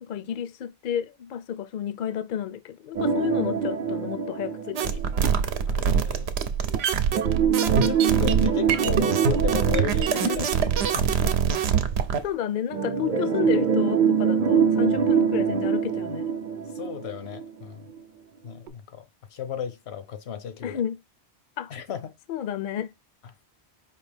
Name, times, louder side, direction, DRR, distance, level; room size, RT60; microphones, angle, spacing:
voice 1, 0.0-5.0 10.1-10.5 12.2-16.3 20.6-21.0 21.6-21.7 22.3-22.9, left 10 dB, 60° left, 0.6 m, -31 dB
sound 1, 2.9-5.6 7.1-11.5 12.7-17.6 18.0-18.1 18.7-18.8, right 7 dB, 50° right, 0.7 m, -25 dB
sound 2, 4.8-12.3, right 7 dB, 80° right, 0.9 m, -24 dB
voice 2, 5.7-6.3 7.5-10.5 10.9-11.5 16.7-17.9 18.4-19.0 19.3-20.8 21.7-22.1, left 8 dB, 80° left, 1.1 m, -35 dB
5.0 x 2.8 x 3.3 m
omnidirectional pair, 1.1 m